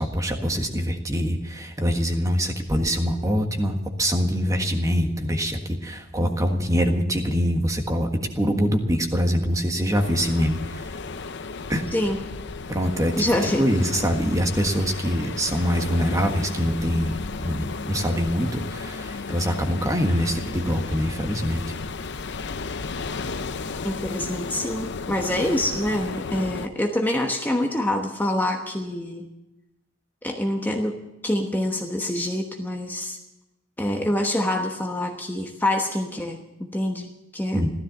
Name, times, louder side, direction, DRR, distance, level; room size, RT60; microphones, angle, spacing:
voice 1, 0.0-8.1 8.3-11.0 11.7-11.8 12.7-13.1 13.4-21.6 37.5-37.7, equal, 15° right, 4 dB, 1.5 m, -24 dB
sound 1, 9.9-26.7, left 4 dB, 60° left, 0.7 m, -34 dB
voice 2, 13.2-13.6 23.8-29.3 30.2-31.0 31.2-33.2 33.8-37.6, left 1 dB, 10° left, 2 dB, 1.1 m, -26 dB
15.0 x 13.0 x 6.9 m, 0.96 s
head